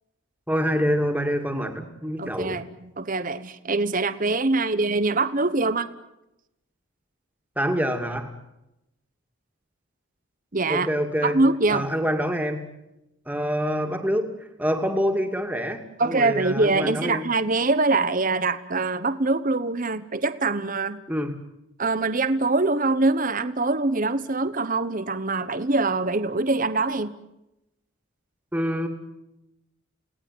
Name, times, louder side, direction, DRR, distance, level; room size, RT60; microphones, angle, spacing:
voice 1, 0.5-2.6 7.6-8.3 10.7-11.4 11.7-12.7 13.3-14.3 14.6-17.2 21.1-21.3 28.5-28.9, equal, 5° right, 5 dB, 2.5 m, -26 dB
voice 2, 2.2-5.9 10.5-10.9 11.2-11.9 16.0-21.0 21.8-27.1, right 3 dB, 40° right, 13 dB, 1.0 m, -24 dB
29.5 x 18.5 x 9.4 m, 0.90 s
head